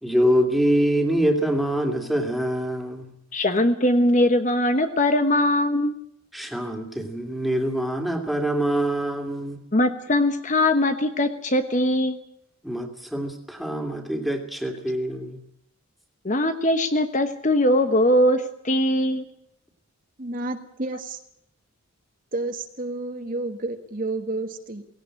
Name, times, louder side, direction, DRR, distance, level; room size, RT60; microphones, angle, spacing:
voice 1, 0.0-3.1 6.3-9.6 12.6-15.4, equal, ahead, 3 dB, 2.6 m, -24 dB
voice 2, 3.3-6.0 9.7-12.2 16.2-19.2, left 1 dB, 35° left, 9 dB, 1.1 m, -21 dB
voice 3, 20.2-21.2 22.3-24.8, right 2 dB, 40° right, 7 dB, 1.5 m, -30 dB
17.5 x 17.5 x 9.9 m, 0.75 s
head